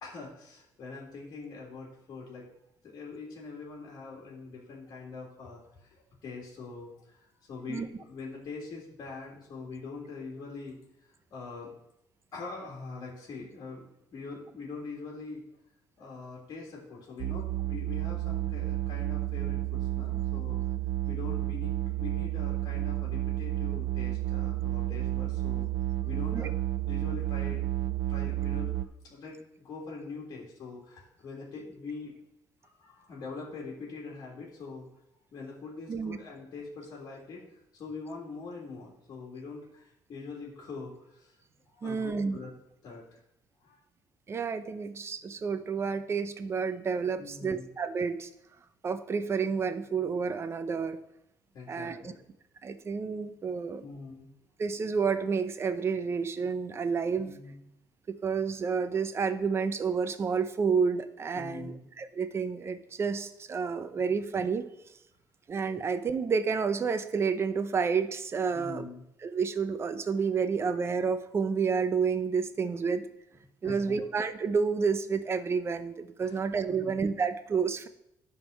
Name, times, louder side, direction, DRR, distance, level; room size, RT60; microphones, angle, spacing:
voice 1, 0.0-2.5 2.8-10.8 11.0-11.7 12.3-15.4 16.0-20.6 21.1-25.7 26.0-26.5 26.8-27.7 28.1-32.1 32.6-34.9 35.3-37.4 37.7-41.4 41.7-42.5 42.8-43.2 43.6-43.8 47.2-47.7 51.5-52.2 53.8-54.3 57.2-57.6 61.3-61.8 64.0-64.1 68.5-69.0 73.6-74.0 76.2-76.4 76.7-76.9, left 4 dB, 50° left, -4 dB, 2.0 m, -43 dB
Live Sub bass riser, 17.2-28.8, right 15 dB, 80° right, 0.4 m, -31 dB
voice 2, 41.8-42.4 44.3-48.3 48.8-51.0 51.7-52.1 52.6-53.8 54.6-57.3 58.1-64.7 65.5-68.9 69.2-73.1 73.6-77.9, right 5 dB, 35° right, 11 dB, 0.7 m, -30 dB
11.0 x 3.7 x 6.2 m, 0.80 s
cardioid pair, 110°, 8 cm